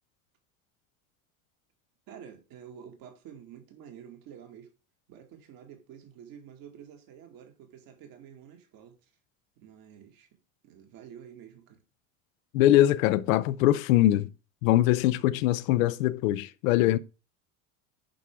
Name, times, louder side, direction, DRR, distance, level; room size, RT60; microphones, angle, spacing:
voice 1, 2.1-4.7 5.1-9.1 9.6-10.3 10.6-11.8, right 8 dB, 60° right, 2.2 m, -49 dB
voice 2, 12.5-14.3 14.6-17.0, left 14 dB, 75° left, 0.7 m, -22 dB
10.0 x 4.7 x 3.6 m
hypercardioid pair, 80°, 40 cm